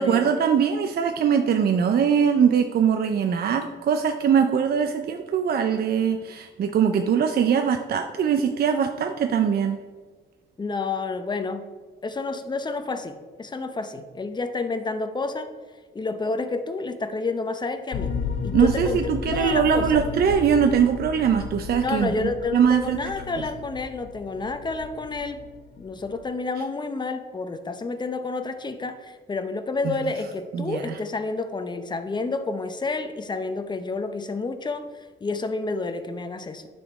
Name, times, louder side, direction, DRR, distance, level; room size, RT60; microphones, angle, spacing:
voice 1, 0.0-9.8 18.5-23.0 29.8-29.9 30.5-31.0, right 7 dB, 50° right, 6 dB, 0.5 m, -22 dB
voice 2, 10.6-11.6 12.0-15.5 15.9-18.1 18.4-19.0 19.3-20.0 21.8-25.4 25.8-34.9 35.2-36.7, left 3 dB, 20° left, 9 dB, 0.7 m, -29 dB
sound 1, 17.9-26.2, left 5 dB, 80° left, 0.8 m, -33 dB
9.8 x 4.3 x 4.7 m, 1.4 s
cardioid pair, 110°, 20 cm